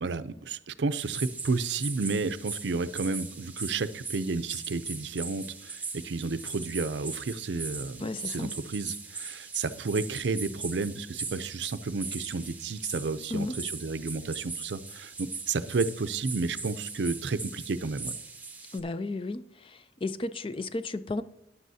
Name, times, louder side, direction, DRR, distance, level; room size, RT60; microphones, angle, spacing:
voice 1, 0.0-18.1, right 4 dB, 75° right, 0.5 m, -32 dB
sound 1, 1.0-18.8, right 4 dB, 10° right, 0.9 m, -40 dB
voice 2, 8.0-8.6 13.3-13.6 18.7-21.2, left 2 dB, 30° left, 0.4 m, -34 dB
14.0 x 9.9 x 2.7 m
head